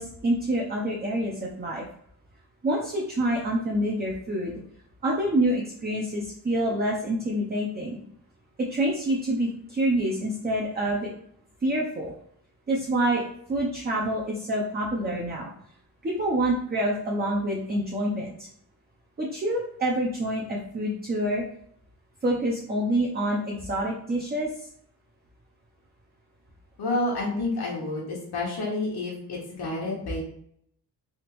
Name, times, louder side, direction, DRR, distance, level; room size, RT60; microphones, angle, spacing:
voice 1, 0.0-1.8 2.6-4.6 5.0-8.0 8.6-11.1 11.6-12.1 12.7-15.5 16.0-18.5 19.2-21.4 22.2-24.7, right 1 dB, 25° right, -2 dB, 0.5 m, -27 dB
voice 2, 26.8-30.2, left 2 dB, 70° left, -4 dB, 1.1 m, -29 dB
3.5 x 2.9 x 2.9 m, 0.68 s
wide cardioid pair, 130°, 40 cm